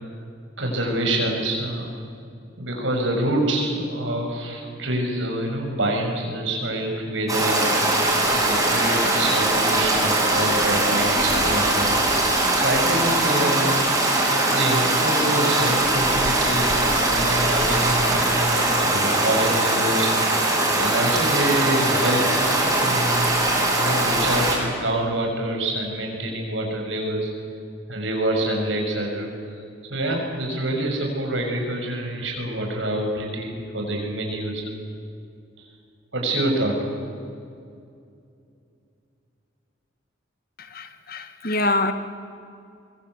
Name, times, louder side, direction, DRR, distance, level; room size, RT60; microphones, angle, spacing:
voice 1, 0.6-1.9 2.6-7.7 8.3-11.9 12.5-13.9 14.5-20.3 20.8-22.2 22.6-23.4 23.8-27.3 27.9-29.6 29.9-34.6 35.6-35.7 36.1-36.9, right 1 dB, 85° right, 7.1 m, -26 dB
Stream, 7.3-24.6, right 2 dB, 20° right, 6.7 m, -21 dB
voice 2, 40.6-41.9, left 2 dB, 50° left, 1.9 m, -25 dB
24.0 x 24.0 x 8.4 m
head